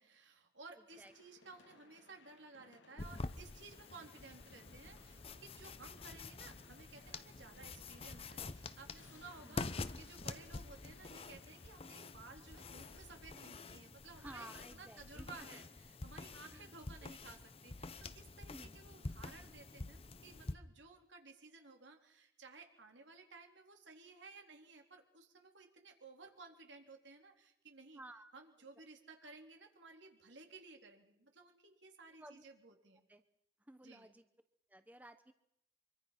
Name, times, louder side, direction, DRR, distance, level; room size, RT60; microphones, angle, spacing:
voice 1, 0.0-14.5 14.7-28.0 28.3-33.0 33.8-34.1, right 3 dB, 85° right, 3 dB, 3.8 m, -57 dB
sound 1, 0.9-13.3, left 3 dB, 85° left, 2.1 m, -65 dB
sound 2, 3.0-20.6, left 3 dB, 30° left, 0.8 m, -48 dB
voice 2, 9.4-9.8 14.2-15.6 16.5-16.7 17.0-17.3 18.5-18.8 27.9-28.3 32.2-32.4 33.1-33.2 33.7-34.2 34.7-35.3, right 1 dB, 10° right, 9 dB, 1.0 m, -55 dB
25.0 x 24.0 x 5.9 m, 0.77 s
head